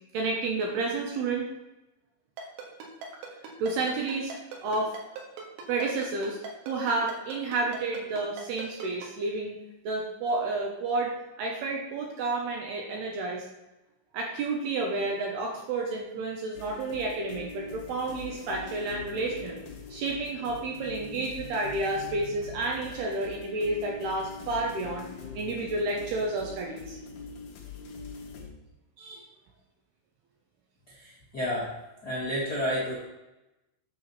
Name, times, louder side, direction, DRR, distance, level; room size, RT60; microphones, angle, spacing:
voice 1, 0.1-1.5 3.6-5.0 5.7-6.4 6.7-9.6 9.8-13.5 14.1-19.6 19.9-25.1 25.3-27.0 29.0-29.2, right 3 dB, 75° right, 0 dB, 2.6 m, -30 dB
Ringtone, 2.4-9.1, right 4 dB, 90° right, 4.3 m, -40 dB
sound 1, 16.5-28.5, left 4 dB, 70° left, 1.9 m, -43 dB
voice 2, 31.0-31.7 32.0-33.0, equal, 50° left, -7 dB, 1.1 m, -30 dB
8.9 x 4.6 x 7.0 m, 0.99 s
omnidirectional pair, 5.7 m